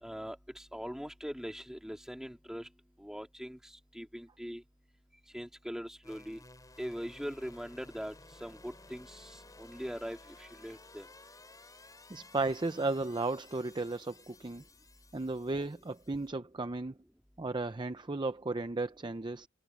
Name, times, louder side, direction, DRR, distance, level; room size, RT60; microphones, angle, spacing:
voice 1, 0.0-2.7 3.0-4.6 5.3-6.4 6.8-8.1 8.4-11.1, equal, ahead, 2.8 m, -41 dB
sound 1, 6.0-16.3, left 3 dB, 20° left, 3.8 m, -56 dB
voice 2, 12.1-14.6 15.1-16.9 17.4-19.5, right 3 dB, 20° right, 0.6 m, -34 dB
head